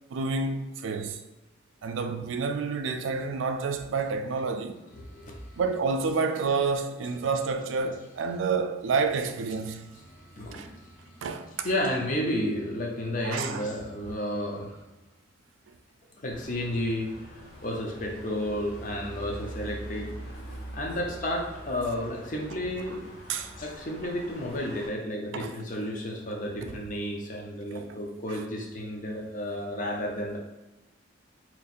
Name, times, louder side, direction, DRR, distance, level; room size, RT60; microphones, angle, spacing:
voice 1, 0.1-1.2 1.8-4.8 5.6-9.9 10.5-10.7 11.2-11.7 13.2-13.7 15.7-15.8 23.3-23.5 25.3-25.6 26.6-26.8 27.7-27.9 28.3-28.4, right 4 dB, 75° right, 0.3 m, -29 dB
voice 2, 4.9-5.8 7.0-7.4 7.8-8.4 8.9-9.1 9.5-14.8 16.2-17.1 17.6-20.1 20.5-23.0 23.6-30.4, left 1 dB, 40° left, 0.7 m, -32 dB
sound 1, 16.3-24.9, right 1 dB, 60° left, 1.0 m, -43 dB
3.0 x 2.6 x 4.1 m
head